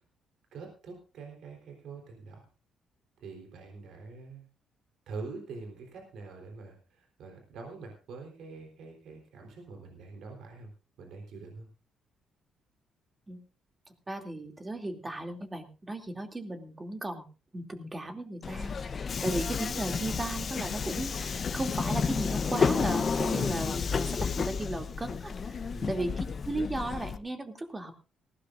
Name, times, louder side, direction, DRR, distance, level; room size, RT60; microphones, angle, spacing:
voice 1, 0.5-2.4 3.2-4.4 5.1-10.7 11.0-11.7 25.7-26.0, right 4 dB, 75° right, 2 dB, 3.8 m, -45 dB
voice 2, 14.1-17.3 17.5-27.9, right 2 dB, 20° right, 4 dB, 2.7 m, -36 dB
Subway metro underground, 18.4-27.2, left 5 dB, 45° left, 0.8 m, -31 dB
19.0 x 16.5 x 2.6 m, 0.34 s
cardioid pair, 90°, 0 cm